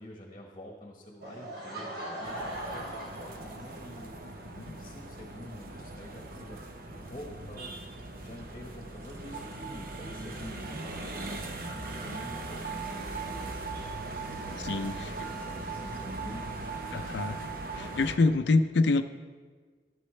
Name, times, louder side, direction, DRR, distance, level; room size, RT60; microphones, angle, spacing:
voice 1, 0.0-4.1 4.6-7.9 8.2-13.7 14.4-17.2, left 1 dB, 30° left, 0 dB, 1.1 m, -47 dB
Laughter / Crowd, 1.2-4.0, right 1 dB, 70° right, 3.0 m, -39 dB
sound 1, 2.2-18.2, right 3 dB, 50° right, 0.8 m, -39 dB
voice 2, 14.6-15.3 16.9-17.4 17.7-19.0, left 3 dB, 70° left, 9 dB, 0.4 m, -26 dB
12.0 x 11.5 x 3.2 m, 1.5 s
head